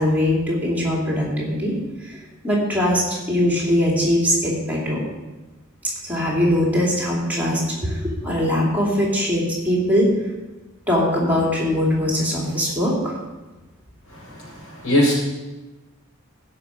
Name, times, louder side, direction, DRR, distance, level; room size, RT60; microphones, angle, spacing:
voice 1, 0.0-1.7 2.0-2.2 2.4-5.0 6.0-10.1 10.9-13.2, left 1 dB, 10° right, -4 dB, 2.7 m, -21 dB
voice 2, 14.1-15.1, left 1 dB, 85° left, -3 dB, 4.5 m, -21 dB
16.0 x 5.7 x 5.0 m, 1.1 s
head